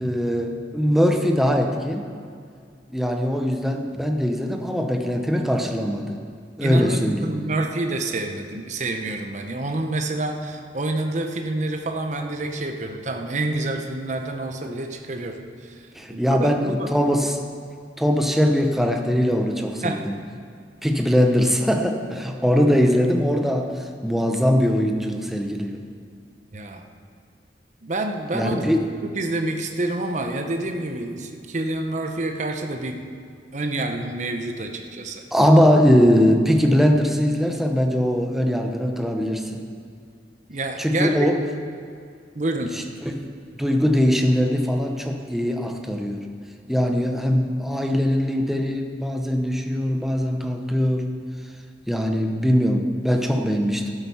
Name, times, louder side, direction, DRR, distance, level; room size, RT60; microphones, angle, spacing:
voice 1, 0.0-2.1 2.9-6.2 6.6-7.3 15.9-17.4 18.0-20.2 20.8-25.8 28.3-28.9 35.3-39.6 40.8-41.4 42.7-42.8 43.1-46.3 46.7-51.1 51.9-53.9, equal, ahead, 3 dB, 0.7 m, -21 dB
voice 2, 6.6-15.4 15.6-15.7 16.1-16.9 19.8-20.1 26.5-26.8 27.8-28.7 29.0-33.0 33.5-35.2 40.5-41.3 42.3-42.7, right 2 dB, 40° right, 4 dB, 0.8 m, -28 dB
12.5 x 8.1 x 5.6 m, 2.3 s
head